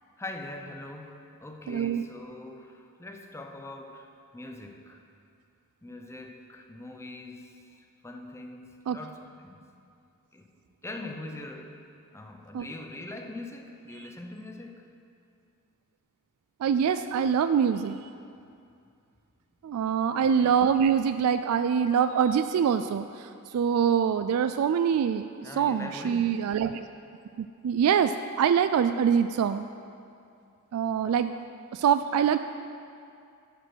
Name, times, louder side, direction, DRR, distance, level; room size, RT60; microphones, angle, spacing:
voice 1, 0.2-5.0 5.8-7.6 8.0-9.7 10.3-10.5 10.8-11.8 12.1-14.9 20.2-20.5 25.4-26.4, left 2 dB, 10° left, 3 dB, 0.6 m, -42 dB
voice 2, 1.7-2.0 8.9-9.0 12.5-12.6 16.6-18.0 19.6-23.3 23.5-25.3 25.6-26.8 27.4-29.7 30.7-31.3 31.7-32.4, right 7 dB, 75° right, 13 dB, 0.3 m, -24 dB
12.0 x 5.1 x 6.2 m, 2.5 s
head